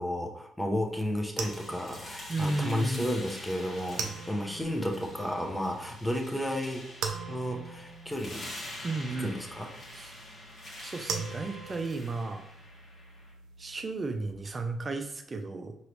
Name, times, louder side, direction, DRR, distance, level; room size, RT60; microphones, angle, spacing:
voice 1, 0.0-6.8 7.3-8.9 9.2-9.7, left 1 dB, 5° left, 2 dB, 0.8 m, -32 dB
sound 1, 0.8-14.3, right 5 dB, 85° right, 0.5 m, -43 dB
sound 2, 1.4-13.3, left 1 dB, 55° left, 1.5 m, -46 dB
voice 2, 2.3-3.1 8.8-9.4 9.9-10.1 10.8-12.4 13.6-15.8, right 3 dB, 30° right, 6 dB, 0.5 m, -33 dB
4.7 x 3.0 x 3.1 m, 0.76 s
cardioid pair, 90°, 0 cm